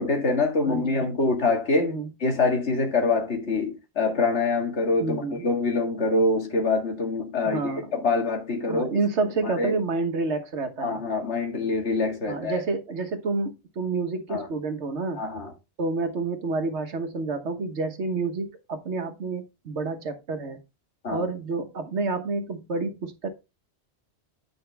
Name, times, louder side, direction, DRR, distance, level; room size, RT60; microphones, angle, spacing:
voice 1, 0.0-1.9 2.2-8.9 9.4-9.8 10.8-12.6 14.3-14.5 15.1-15.5 21.0-21.2, left 3 dB, 85° left, 2.0 m, -25 dB
voice 2, 0.6-1.0 1.8-2.1 5.0-5.5 7.4-7.9 8.7-11.0 12.3-15.2 15.8-20.6 21.1-23.3, right 3 dB, 85° right, 1.5 m, -29 dB
9.2 x 5.1 x 3.3 m
omnidirectional pair, 1.1 m